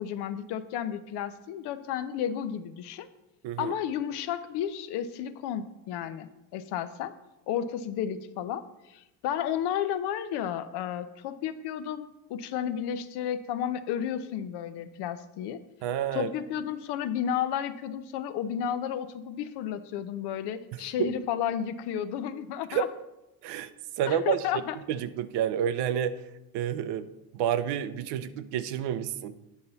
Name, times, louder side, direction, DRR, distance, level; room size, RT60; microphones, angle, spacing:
voice 1, 0.0-3.1 3.6-7.1 7.5-15.6 16.1-22.9 24.1-24.8, left 9 dB, 65° left, 12 dB, 0.7 m, -32 dB
voice 2, 15.8-16.3 21.0-21.1 22.7-22.8 23.4-23.7 24.0-24.4 24.9-26.2 26.5-27.1 27.3-29.4, right 9 dB, 70° right, 12 dB, 0.7 m, -29 dB
9.3 x 5.6 x 4.0 m, 0.95 s
supercardioid pair, 100°, 43 cm